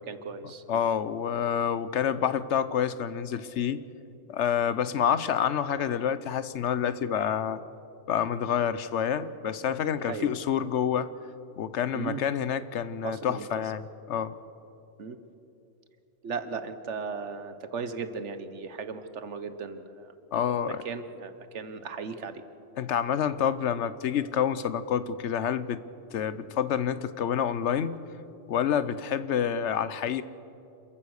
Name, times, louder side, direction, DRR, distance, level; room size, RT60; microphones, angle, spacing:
voice 1, 0.1-0.8 10.0-10.3 11.9-12.2 13.0-13.5 15.0-15.2 16.2-20.1 20.7-22.4, right 5 dB, 80° right, 11 dB, 1.4 m, -37 dB
voice 2, 0.7-3.8 4.3-7.6 8.1-11.1 11.6-14.4 20.3-20.8 22.8-25.8 26.1-28.0 28.5-30.2, left 8 dB, 80° left, 14 dB, 1.1 m, -28 dB
27.0 x 15.0 x 6.5 m, 2.8 s
omnidirectional pair, 1.2 m